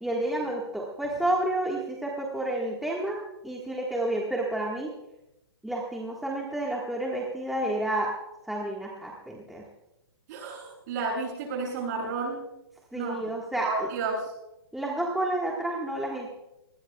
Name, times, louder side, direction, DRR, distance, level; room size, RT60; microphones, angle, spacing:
voice 1, 0.0-4.9 5.6-8.1 8.5-9.6 12.9-13.9 14.7-16.3, right 1 dB, ahead, -3 dB, 1.6 m, -30 dB
voice 2, 10.3-12.4 12.9-13.2 13.6-14.1, right 4 dB, 45° right, -2 dB, 7.7 m, -31 dB
23.0 x 19.5 x 2.3 m, 0.89 s
hypercardioid pair, 145°, 13 cm